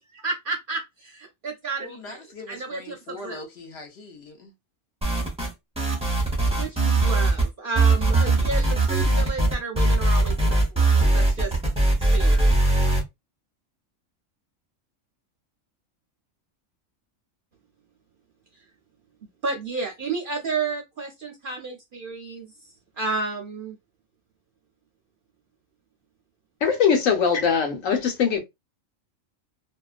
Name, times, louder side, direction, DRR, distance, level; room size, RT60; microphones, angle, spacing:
voice 1, 0.1-2.2 2.5-3.4 6.5-11.6 12.0-12.5 19.4-22.5 23.0-23.8, right 4 dB, 55° right, 0.6 m, -32 dB
voice 2, 1.8-4.5, left 2 dB, 60° left, 0.9 m, -41 dB
sound 1, 5.0-5.5 5.8-7.5 7.8-13.0, right 2 dB, 5° right, 0.7 m, -20 dB
voice 3, 26.6-28.4, left 6 dB, 75° left, 1.2 m, -21 dB
2.5 x 2.3 x 2.4 m
omnidirectional pair, 1.4 m